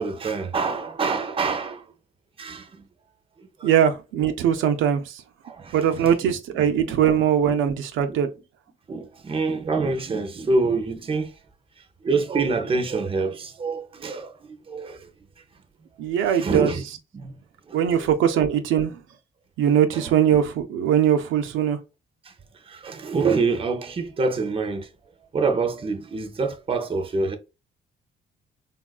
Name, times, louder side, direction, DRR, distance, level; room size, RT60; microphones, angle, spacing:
voice 1, 0.0-1.8 2.4-2.7 3.6-3.7 4.6-4.7 5.4-7.0 8.1-8.2 8.9-11.3 12.0-14.3 14.7-15.0 16.3-16.8 17.1-17.3 17.9-18.4 19.9-20.1 22.7-24.9 25.3-27.4, right 4 dB, 25° right, 0.6 m, -26 dB
voice 2, 3.6-5.2 5.7-8.3 16.0-16.7 17.7-18.9 19.6-21.8, right 9 dB, 80° right, 0.4 m, -21 dB
3.4 x 2.3 x 2.3 m
cardioid pair, 90°, 20 cm